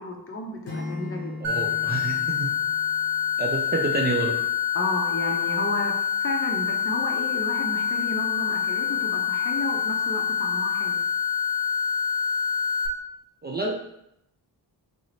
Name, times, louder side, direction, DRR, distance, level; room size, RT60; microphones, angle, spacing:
voice 1, 0.0-1.3 4.7-11.0, left 1 dB, 30° left, 2 dB, 0.6 m, -32 dB
Acoustic guitar / Strum, 0.6-3.7, left 3 dB, 75° left, 0.9 m, -38 dB
voice 2, 1.4-2.5 3.4-4.4 13.4-13.7, right 3 dB, 25° right, -1 dB, 0.4 m, -28 dB
sound 1, 1.4-12.9, left 8 dB, 90° right, 0.6 m, -26 dB
3.0 x 2.0 x 4.0 m, 0.80 s
cardioid pair, 65°, 43 cm